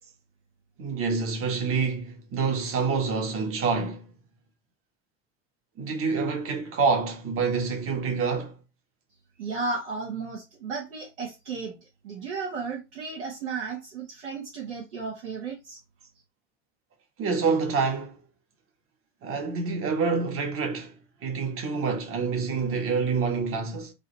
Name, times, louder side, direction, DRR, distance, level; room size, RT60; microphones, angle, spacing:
voice 1, 0.8-4.1 5.8-8.6 17.2-18.2 19.2-20.9 21.2-23.9, right 5 dB, 40° right, 1.4 m, -27 dB
voice 2, 9.4-11.8 12.0-15.8, right 4 dB, 75° right, 1.5 m, -34 dB
4.0 x 2.9 x 4.1 m
figure-of-eight pair, 75°, 35 cm